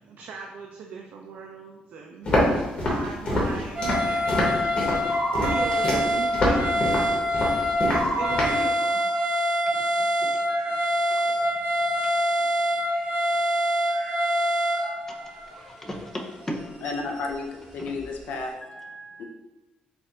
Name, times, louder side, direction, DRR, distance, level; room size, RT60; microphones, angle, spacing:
voice 1, 0.1-2.4 2.8-4.5 5.4-7.0 7.9-9.1, right 4 dB, 65° right, 1 dB, 0.3 m, -39 dB
Walk footsteps, 2.2-8.6, left 1 dB, 35° left, 1.1 m, -25 dB
sound 1, 3.7-17.4 18.0-18.1, equal, 20° right, 1.2 m, -25 dB
voice 2, 15.5-16.8 18.6-19.2, equal, 15° left, 1 dB, 0.5 m, -36 dB
voice 3, 16.8-18.5 19.2-19.3, left 3 dB, 65° left, 3 dB, 0.5 m, -32 dB
4.4 x 2.4 x 3.7 m, 1.1 s
cardioid pair, 165°, 3 cm